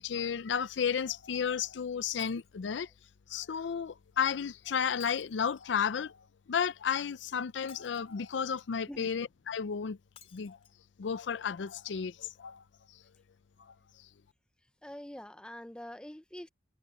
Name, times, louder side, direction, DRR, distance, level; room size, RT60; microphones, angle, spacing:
voice 1, 0.0-2.9 3.3-6.2 6.5-10.0 10.3-10.6 11.0-12.6, left 7 dB, 85° left, 0.5 m, -33 dB
Shatter, 2.2-2.6 5.0-5.9 7.7-8.5 10.2-10.7 11.4-11.5 11.7-11.8, left 8 dB, 35° left, 3.2 m, -57 dB
voice 2, 14.8-16.5, left 1 dB, 5° left, 0.5 m, -45 dB
head